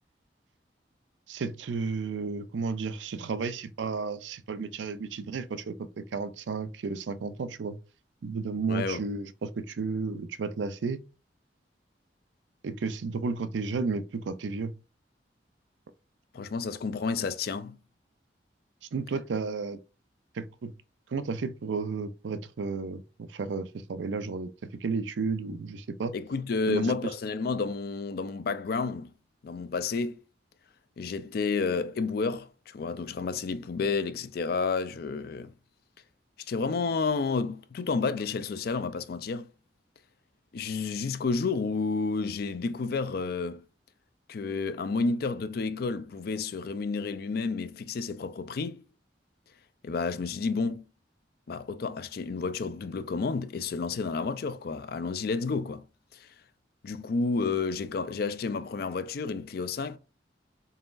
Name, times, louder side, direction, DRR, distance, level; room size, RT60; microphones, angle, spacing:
voice 1, 1.3-7.8 8.2-11.0 12.6-14.7 18.9-19.8 20.3-20.7 21.1-24.5 24.8-26.1 26.7-26.9, right 4 dB, 85° right, 0.4 m, -33 dB
voice 2, 8.7-9.0 16.3-17.8 26.1-29.1 29.4-30.2 31.0-35.5 36.5-39.5 40.5-43.6 44.3-48.8 49.8-50.8 51.5-55.8 56.1-56.3 56.8-60.0, left 4 dB, 55° left, 0.4 m, -30 dB
3.9 x 3.8 x 2.5 m
head